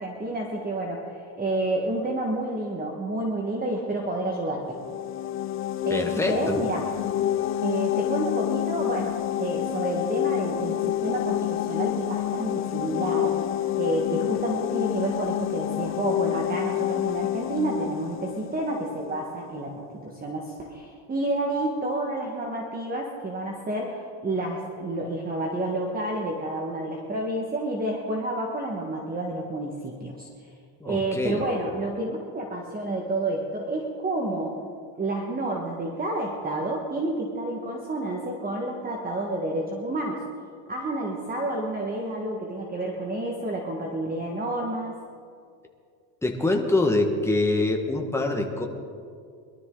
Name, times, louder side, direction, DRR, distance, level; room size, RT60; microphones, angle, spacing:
voice 1, 0.0-4.8 5.8-6.8 7.6-13.4 13.8-30.5 30.8-34.5 35.0-40.2 40.7-45.0, right 2 dB, 20° right, 0 dB, 1.5 m, -30 dB
sound 1, 4.7-19.4, left 12 dB, 30° left, 0.5 m, -28 dB
voice 2, 5.9-6.6 30.8-31.4 46.2-48.7, left 2 dB, 5° left, 2 dB, 1.5 m, -25 dB
22.0 x 12.5 x 3.9 m, 2.3 s
cardioid pair, 130°, 48 cm